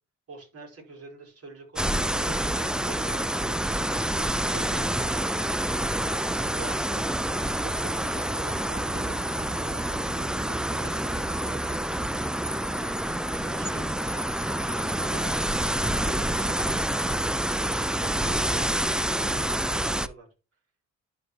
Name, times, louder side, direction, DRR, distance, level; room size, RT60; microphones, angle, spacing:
voice 1, 0.3-5.3 6.4-9.8 10.1-11.8 12.7-12.9 13.3-16.6 17.7-20.3, right 3 dB, 50° right, 0 dB, 4.1 m, -46 dB
sound 1, 1.8-20.1, right 1 dB, 5° right, 0.3 m, -27 dB
11.5 x 4.6 x 2.9 m, 0.30 s
cardioid pair, 90°, 30 cm